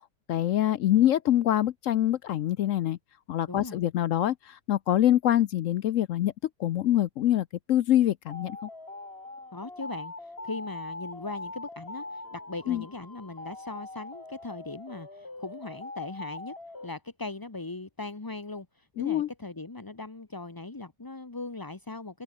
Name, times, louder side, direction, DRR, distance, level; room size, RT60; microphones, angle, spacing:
voice 1, 0.3-3.0 3.3-6.3 6.6-8.6 12.7-12.8 19.0-19.3, left 12 dB, 65° left, 0.8 m, -25 dB
sound 1, 8.3-16.9, left 2 dB, 35° left, 3.9 m, -42 dB
voice 2, 9.5-16.5 16.8-22.2, left 3 dB, 15° left, 0.9 m, -39 dB
open air
omnidirectional pair, 1.8 m